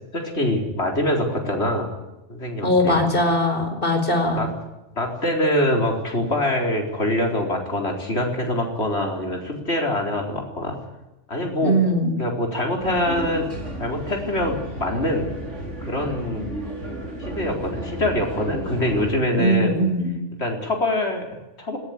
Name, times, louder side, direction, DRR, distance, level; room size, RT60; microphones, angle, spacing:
voice 1, 0.1-1.9 2.3-3.0 4.4-4.5 4.9-10.8 11.3-11.7 12.2-13.5 13.8-15.2 15.8-16.5 17.2-19.8 20.4-21.8, left 1 dB, 65° left, 2 dB, 4.8 m, -24 dB
voice 2, 2.6-4.4 11.6-12.1 19.3-20.1, equal, 50° left, 5 dB, 4.8 m, -20 dB
sound 1, 12.8-19.2, right 1 dB, 85° right, 4.5 m, -33 dB
19.0 x 17.0 x 9.9 m, 1.0 s
omnidirectional pair, 1.2 m